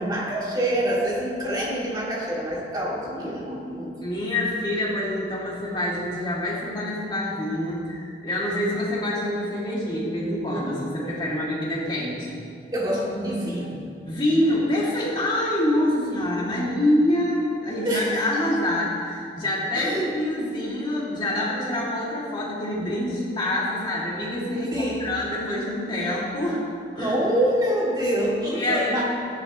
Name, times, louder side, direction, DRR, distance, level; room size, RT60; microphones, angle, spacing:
voice 1, 0.0-3.9 12.7-13.8 17.8-18.5 19.7-20.1 24.7-25.1 27.0-29.0, right 1 dB, 20° right, -6 dB, 2.4 m, -26 dB
voice 2, 4.0-12.4 14.1-26.7 26.9-27.1 28.5-29.0, left 1 dB, 25° left, -6 dB, 2.5 m, -26 dB
16.0 x 10.0 x 3.1 m, 2.4 s
head